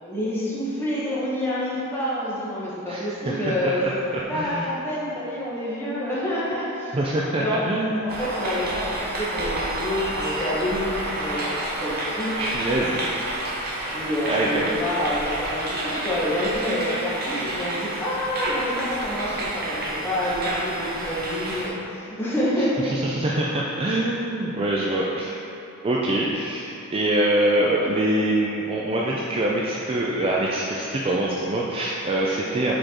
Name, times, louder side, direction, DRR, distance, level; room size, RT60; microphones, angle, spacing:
voice 1, 0.0-4.0 4.3-7.0 7.4-7.6 8.0-11.5 11.8-12.3 13.9-22.9, left 1 dB, 10° left, -9 dB, 1.3 m, -27 dB
voice 2, 2.9-4.7 6.9-8.1 12.4-13.0 14.3-14.7 22.8-25.4 25.8-32.7, right 1 dB, 25° right, -4 dB, 0.4 m, -24 dB
sound 1, 8.1-21.7, right 1 dB, 45° right, 0.8 m, -29 dB
7.6 x 4.3 x 2.9 m, 2.8 s
head